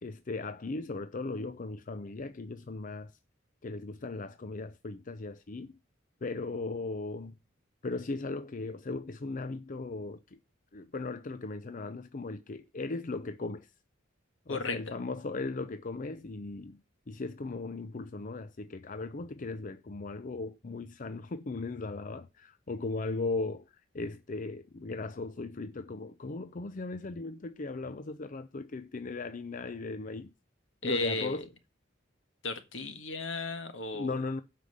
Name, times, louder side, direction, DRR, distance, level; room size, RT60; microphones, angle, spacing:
voice 1, 0.0-3.2 3.6-5.8 6.2-7.4 7.8-10.4 10.7-13.7 14.5-30.3 30.8-31.4 33.9-34.4, left 3 dB, 40° left, 0.6 m, -37 dB
voice 2, 14.5-14.9 30.8-31.4 32.4-34.1, left 3 dB, 70° left, 1.7 m, -35 dB
8.3 x 5.8 x 8.0 m
head